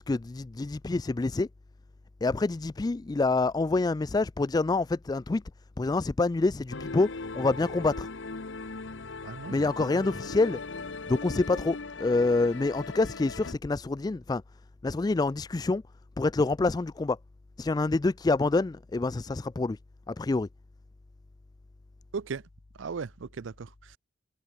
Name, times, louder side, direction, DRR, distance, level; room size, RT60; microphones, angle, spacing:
voice 1, 0.0-1.5 2.2-5.4 5.8-8.1 9.5-10.6 11.1-14.4 14.8-15.8 16.2-17.2 17.6-19.8 20.1-20.5, left 3 dB, 20° left, 0.3 m, -27 dB
sound 1, 6.7-13.5, left 3 dB, 80° left, 1.1 m, -39 dB
voice 2, 9.2-10.0 22.1-22.4 22.8-24.0, right 5 dB, 85° right, 0.5 m, -37 dB
head